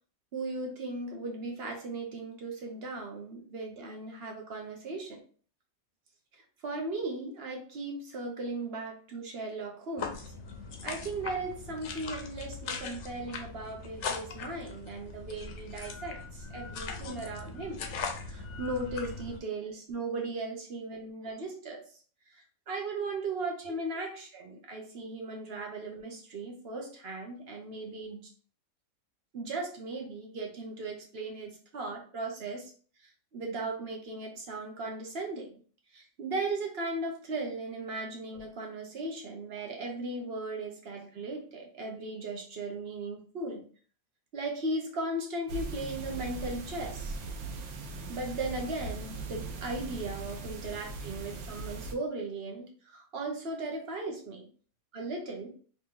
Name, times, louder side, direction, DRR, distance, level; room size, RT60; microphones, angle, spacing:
voice 1, 0.3-5.2 6.6-10.2 10.8-17.8 18.3-21.8 22.3-28.3 29.3-32.6 33.3-35.6 35.9-43.6 44.3-47.1 48.1-54.4 54.9-55.5, right 2 dB, 50° right, 1 dB, 1.0 m, -37 dB
sound 1, 10.0-19.4, left 5 dB, 65° left, 0.9 m, -40 dB
sound 2, 45.5-51.9, right 3 dB, 85° right, 1.1 m, -39 dB
3.1 x 2.8 x 3.6 m, 0.43 s
omnidirectional pair, 1.5 m